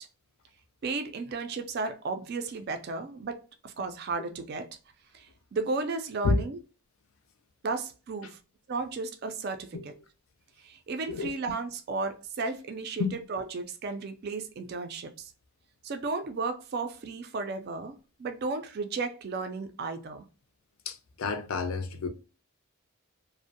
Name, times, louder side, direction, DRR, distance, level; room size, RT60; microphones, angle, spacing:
voice 1, 0.8-4.7 5.1-6.6 7.6-8.4 8.7-9.9 10.6-15.3 15.8-20.2, right 3 dB, 45° right, 0.3 m, -34 dB
voice 2, 20.9-22.1, left 3 dB, 65° left, 0.4 m, -29 dB
2.5 x 2.0 x 2.5 m
head